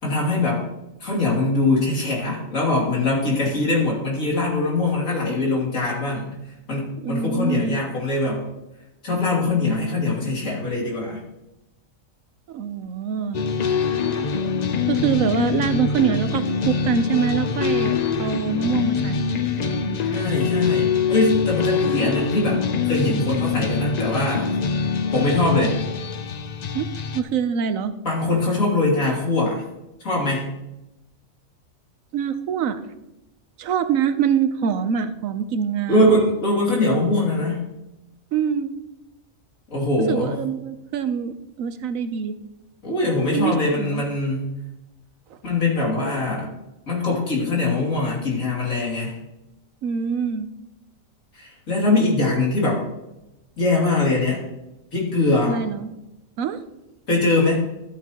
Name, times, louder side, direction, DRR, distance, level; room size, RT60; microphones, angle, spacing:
voice 1, 0.0-0.6 1.0-6.3 6.7-8.5 9.0-11.2 20.0-24.5 25.1-25.8 28.0-29.6 30.0-30.5 35.9-37.7 39.7-40.4 42.8-44.5 45.4-46.5 46.9-49.2 51.3-52.8 53.6-54.4 54.9-55.6 57.1-57.5, left 2 dB, 85° left, -3 dB, 3.2 m, -22 dB
voice 2, 7.0-7.8 12.5-13.4 14.9-19.2 26.7-26.9 27.1-27.9 32.1-32.8 33.6-36.1 38.3-38.7 40.1-42.4 43.3-44.0 49.8-50.5 55.5-55.9 56.4-56.6, right 7 dB, 80° right, 11 dB, 1.1 m, -24 dB
sound 1, 13.3-27.2, left 5 dB, 55° left, 0.5 m, -24 dB
13.0 x 8.3 x 2.9 m, 0.94 s
omnidirectional pair, 1.4 m